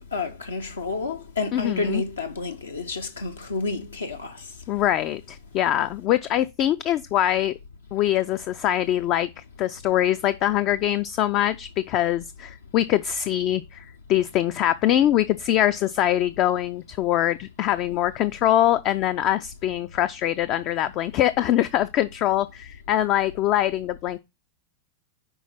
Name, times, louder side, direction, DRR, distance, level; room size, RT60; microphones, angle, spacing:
voice 1, 0.0-4.4, left 3 dB, 75° left, 0.6 m, -30 dB
voice 2, 1.5-2.0 4.7-7.5 7.9-9.3 9.6-13.8 14.1-24.2, left 12 dB, 40° left, 0.3 m, -23 dB
5.4 x 4.4 x 5.7 m
figure-of-eight pair, 90°, 0 cm